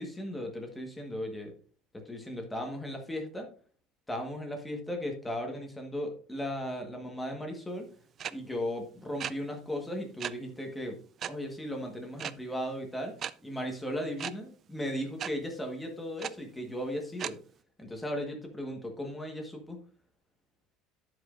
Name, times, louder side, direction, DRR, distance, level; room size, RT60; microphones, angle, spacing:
voice 1, 0.0-1.5 2.0-3.5 4.1-7.9 8.3-11.0 11.3-13.1 13.4-17.4 17.8-19.8, equal, 5° left, 2 dB, 1.4 m, -36 dB
sound 1, 8.2-8.3 9.2-9.3 10.2-10.3 11.2-11.3 12.2-12.3 13.2-13.3 14.2-14.3 15.2-15.3 16.2-16.3 17.2-17.3, right 9 dB, 30° right, 0.3 m, -34 dB
9.3 x 8.0 x 2.5 m, 0.41 s
cardioid pair, 170°, 0 cm